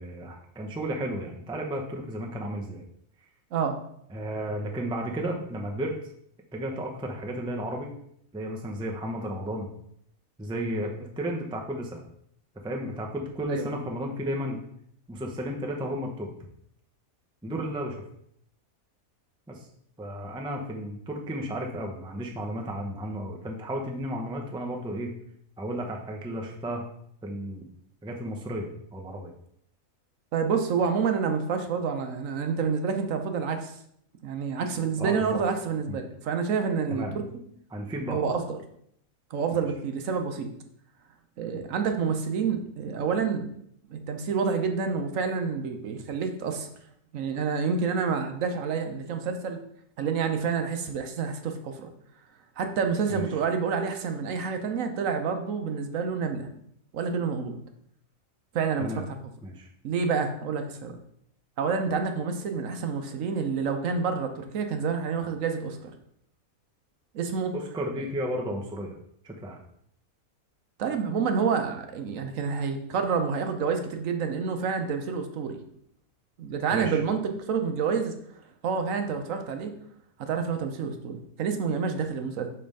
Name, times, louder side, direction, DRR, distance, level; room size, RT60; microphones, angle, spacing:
voice 1, 0.0-2.8 4.1-5.9 6.5-7.9 8.3-9.7 10.4-12.0 12.6-14.6 15.1-16.3 17.4-18.0 19.5-19.7 20.0-25.1 25.6-26.9 27.2-27.6 28.0-29.3 35.0-35.4 35.9-36.0 36.9-37.1 37.7-38.2 53.1-53.2 58.8-59.0 59.4-59.7 67.5-69.0 69.2-69.6 76.7-77.0, equal, 5° right, 1 dB, 0.4 m, -33 dB
voice 2, 30.3-33.8 34.2-37.2 38.1-38.6 39.3-40.5 41.4-43.5 43.9-46.7 47.1-49.6 50.0-51.9 52.6-56.5 56.9-57.6 58.5-59.0 59.8-60.9 61.6-65.9 67.1-67.5 70.8-75.6 76.4-77.2 77.5-78.1 78.6-79.7 80.2-82.5, right 5 dB, 70° right, 6 dB, 1.0 m, -28 dB
5.4 x 3.4 x 5.3 m, 0.70 s
omnidirectional pair, 1.5 m